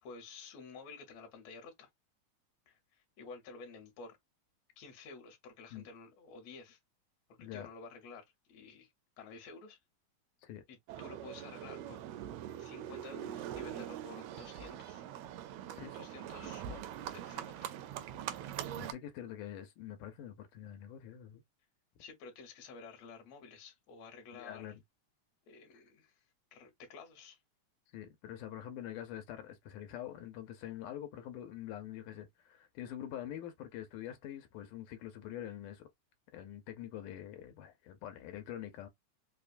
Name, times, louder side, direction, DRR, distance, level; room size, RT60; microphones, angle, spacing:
voice 1, 0.0-1.9 2.7-4.2 4.8-6.8 7.4-8.9 9.2-9.8 10.7-12.0 12.6-15.0 15.9-17.7 22.0-24.7 25.5-26.2 26.5-27.4, left 4 dB, 65° left, 2.1 m, -51 dB
Livestock farm animals working animals, 10.9-18.9, right 11 dB, 80° right, 1.5 m, -43 dB
voice 2, 15.7-16.1 18.8-21.4 24.3-24.8 25.7-25.8 27.9-35.9 36.3-38.9, left 11 dB, 85° left, 2.2 m, -45 dB
5.1 x 2.2 x 2.5 m
omnidirectional pair, 3.5 m